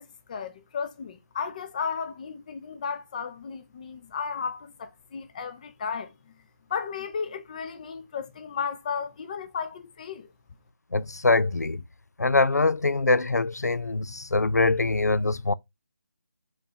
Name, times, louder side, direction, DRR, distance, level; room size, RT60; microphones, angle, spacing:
voice 1, 0.0-6.1 6.7-10.3, left 6 dB, 30° left, 0.6 m, -34 dB
voice 2, 10.9-11.8 12.2-15.5, left 3 dB, 85° left, 0.4 m, -23 dB
4.5 x 3.9 x 2.8 m
figure-of-eight pair, 155°, 9 cm